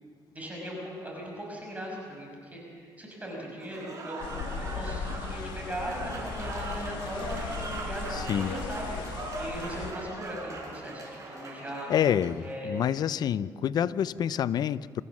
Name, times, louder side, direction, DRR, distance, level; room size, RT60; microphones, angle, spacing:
voice 1, 0.3-4.2 4.6-9.0 9.4-11.9 12.4-12.8, equal, 20° right, -2 dB, 6.2 m, -38 dB
Applause / Crowd, 3.6-12.4, right 2 dB, 45° right, 5.3 m, -40 dB
sound 1, 4.2-9.9, left 5 dB, 90° left, 1.7 m, -37 dB
voice 2, 8.2-8.5 11.9-15.0, left 9 dB, 60° left, 17 dB, 0.5 m, -27 dB
25.5 x 14.5 x 7.3 m, 2.1 s
cardioid pair, 105°, 8 cm